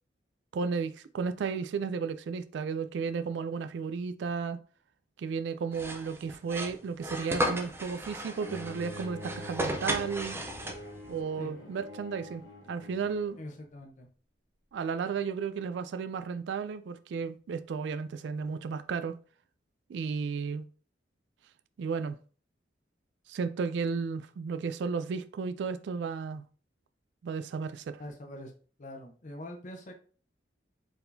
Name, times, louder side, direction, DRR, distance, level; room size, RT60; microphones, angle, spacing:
voice 1, 0.5-4.6 5.2-10.4 11.1-12.4 12.7-13.4 14.7-19.2 19.9-20.7 21.8-22.2 23.3-26.4 27.2-28.0, right 5 dB, 65° right, 0.3 m, -33 dB
sound 1, 5.7-11.1, equal, 15° right, 0.5 m, -35 dB
Bowed string instrument, 8.4-13.5, left 1 dB, 85° left, 1.2 m, -45 dB
voice 2, 11.4-11.8 13.4-14.1 28.0-28.5 28.8-29.9, left 1 dB, 40° left, 0.7 m, -43 dB
4.6 x 3.6 x 2.6 m
head